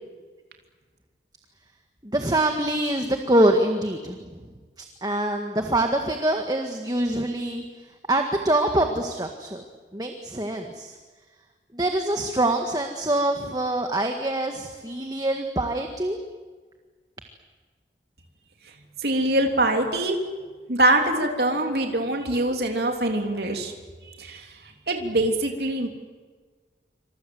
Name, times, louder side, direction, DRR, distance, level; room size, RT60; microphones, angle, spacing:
voice 1, 2.0-4.3 4.8-7.6 8.1-9.6 9.9-11.0 11.7-16.2, right 1 dB, 20° right, 4 dB, 1.8 m, -24 dB
voice 2, 19.0-20.2 20.7-23.7 24.2-24.5 24.9-25.9, right 1 dB, 65° right, 3 dB, 3.2 m, -23 dB
27.5 x 26.5 x 7.9 m, 1.4 s
head